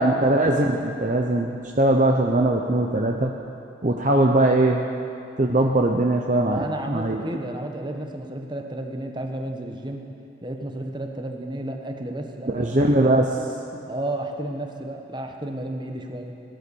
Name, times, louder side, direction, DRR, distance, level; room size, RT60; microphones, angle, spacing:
voice 1, 0.0-3.3 3.8-4.8 5.4-7.2 12.5-13.4, right 1 dB, 40° right, 1 dB, 0.8 m, -20 dB
voice 2, 6.5-10.0 10.4-12.9 13.9-16.3, right 1 dB, 25° right, 3 dB, 1.2 m, -32 dB
18.0 x 11.0 x 7.1 m, 2.7 s
head